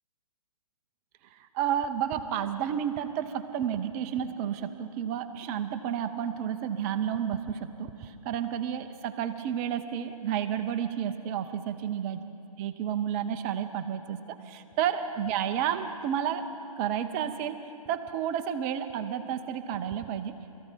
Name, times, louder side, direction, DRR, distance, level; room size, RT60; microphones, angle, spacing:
voice 1, 1.3-12.2 12.6-16.4 16.8-20.6, right 9 dB, 25° right, 8 dB, 0.7 m, -31 dB
22.0 x 14.5 x 4.5 m, 3.0 s
figure-of-eight pair, 140°, 19 cm